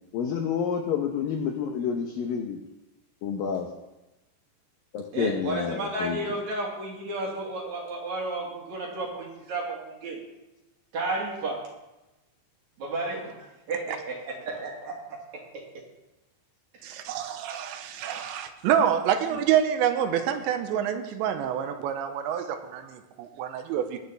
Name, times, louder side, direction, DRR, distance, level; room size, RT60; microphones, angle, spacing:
voice 1, 0.1-2.6 3.2-3.7 4.9-6.2, left 7 dB, 90° left, 3 dB, 1.9 m, -29 dB
voice 2, 5.1-10.2 10.9-11.6 12.8-13.3 13.7-14.9, right 2 dB, 55° right, -1 dB, 2.2 m, -32 dB
voice 3, 16.8-24.0, right 9 dB, 85° right, 7 dB, 3.0 m, -27 dB
21.0 x 8.3 x 3.3 m, 1.0 s
omnidirectional pair, 5.3 m